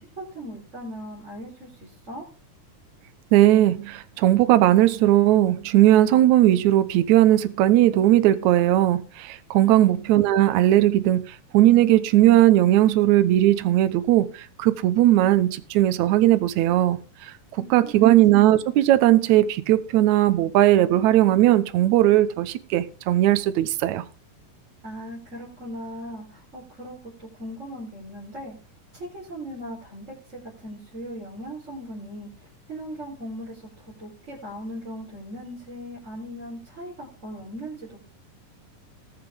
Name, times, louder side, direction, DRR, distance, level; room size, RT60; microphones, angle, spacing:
voice 1, 0.0-2.2 9.6-9.9 17.6-18.1 24.8-28.6 28.9-38.0, equal, 20° right, 4.2 m, -38 dB
voice 2, 3.3-17.3 17.7-24.0, right 14 dB, 70° right, 2.1 m, -18 dB
19.5 x 7.9 x 3.6 m
omnidirectional pair, 3.7 m